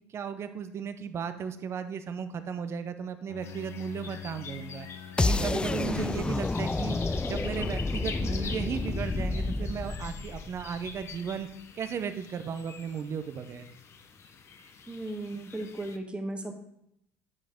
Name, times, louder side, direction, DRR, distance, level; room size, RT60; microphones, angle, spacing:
voice 1, 0.1-4.9 5.2-7.0 7.3-11.5 11.7-13.7, right 7 dB, 45° right, 10 dB, 0.7 m, -35 dB
Bowed string instrument, 3.3-8.2, left 7 dB, 75° left, 0.8 m, -46 dB
sound 1, 3.4-16.0, left 6 dB, 45° left, 0.9 m, -46 dB
sound 2, 5.2-11.1, left 3 dB, 15° left, 0.3 m, -30 dB
voice 2, 14.9-16.5, right 2 dB, 15° right, 4 dB, 1.4 m, -36 dB
9.5 x 5.2 x 3.7 m, 0.79 s
supercardioid pair, 80°, 6 cm